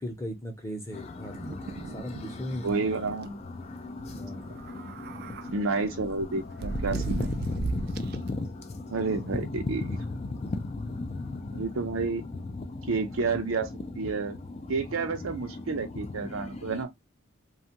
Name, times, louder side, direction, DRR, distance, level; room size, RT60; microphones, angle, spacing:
voice 1, 0.0-2.9 4.1-4.6 9.2-9.5, equal, 15° left, 0.8 m, -38 dB
sound 1, 0.9-16.8, left 2 dB, 30° left, 0.4 m, -37 dB
sound 2, 1.3-2.3 2.7-2.8 3.1-3.3 4.5-5.5 6.0-8.3, right 3 dB, 50° right, 0.3 m, -36 dB
voice 2, 2.6-3.4 5.5-7.3 8.9-10.0 11.5-12.2 12.9-14.4 14.7-16.9, right 4 dB, 90° right, 0.6 m, -30 dB
2.6 x 2.3 x 2.8 m
head